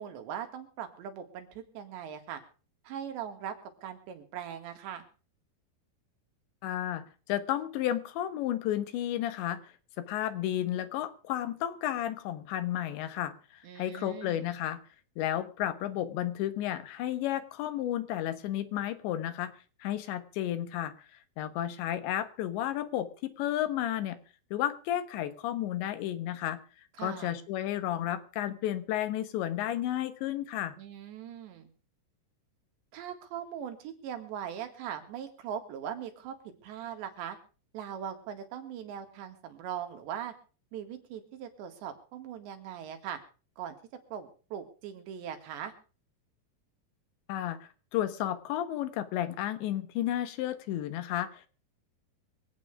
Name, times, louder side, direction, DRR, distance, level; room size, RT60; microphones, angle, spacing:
voice 1, 0.0-2.4 2.8-5.1 13.6-14.5 27.0-27.4 30.8-31.7 32.9-36.4 36.6-37.4 37.7-40.3 40.7-43.2 43.6-43.8 44.1-45.7, right 9 dB, 90° right, 6 dB, 4.3 m, -40 dB
voice 2, 6.6-9.7 10.0-14.8 15.2-19.5 19.8-20.9 21.4-24.2 24.5-26.6 27.0-30.8 47.3-51.5, left 12 dB, 90° left, 11 dB, 3.6 m, -32 dB
25.0 x 8.9 x 4.9 m, 0.37 s
omnidirectional pair, 5.0 m